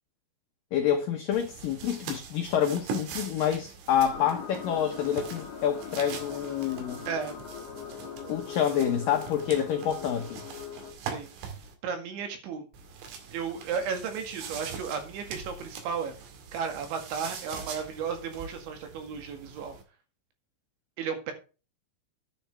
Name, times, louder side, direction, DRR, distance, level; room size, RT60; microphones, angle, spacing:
voice 1, 0.7-7.0 8.3-10.4, left 9 dB, 85° left, 1.9 m, -27 dB
sound 1, 1.3-11.7 12.7-19.8, right 6 dB, 90° right, 4.7 m, -43 dB
sound 2, 4.1-10.9, left 7 dB, 50° left, 3.6 m, -41 dB
voice 2, 11.8-12.7 13.3-16.2 16.5-19.8 21.0-21.3, right 6 dB, 70° right, 4.2 m, -34 dB
10.5 x 9.7 x 3.4 m
omnidirectional pair, 5.6 m